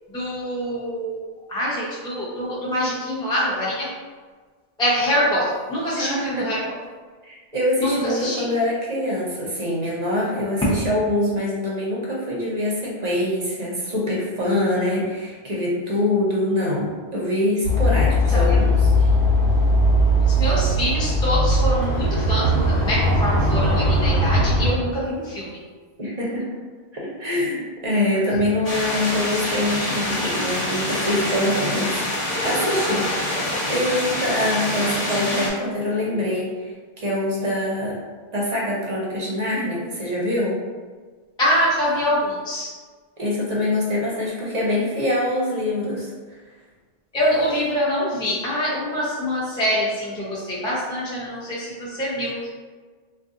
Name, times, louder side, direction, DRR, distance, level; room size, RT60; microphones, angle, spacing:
voice 1, 0.1-1.2 1.5-3.9 4.8-6.6 7.8-8.4 18.3-18.6 20.3-25.6 41.4-42.7 47.1-52.5, equal, 5° left, -8 dB, 0.6 m, -24 dB
voice 2, 6.0-6.5 7.2-19.1 26.0-26.5 26.9-32.0 32.4-38.0 38.3-40.6 43.2-46.1, left 1 dB, 45° right, -4 dB, 0.7 m, -24 dB
sound 1, 17.6-24.7, equal, 90° left, 1.0 m, -19 dB
sound 2, 28.6-35.5, left 1 dB, 40° left, 0.9 m, -26 dB
2.5 x 2.3 x 3.7 m, 1.5 s
omnidirectional pair, 1.1 m